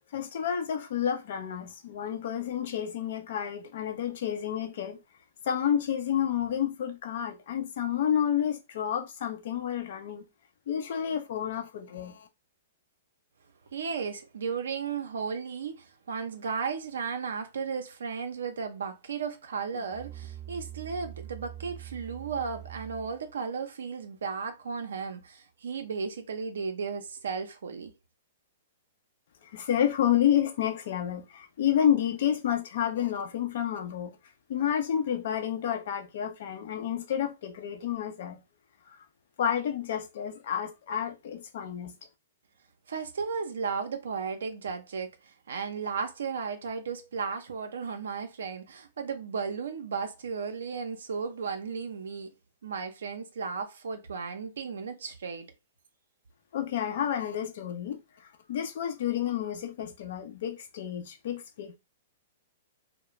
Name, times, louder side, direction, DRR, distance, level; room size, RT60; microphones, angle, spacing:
voice 1, 0.1-5.0 5.4-10.3 10.7-12.3 29.4-34.1 34.5-38.4 38.9-39.1 39.4-42.0 56.5-61.8, left 9 dB, 60° left, 0.6 m, -30 dB
voice 2, 13.7-27.9 42.9-52.3 52.6-55.5, right 5 dB, 80° right, 0.5 m, -35 dB
Musical instrument, 19.7-23.2, right 11 dB, 15° right, 0.7 m, -44 dB
2.3 x 2.0 x 2.9 m
hypercardioid pair, 125°, 0 cm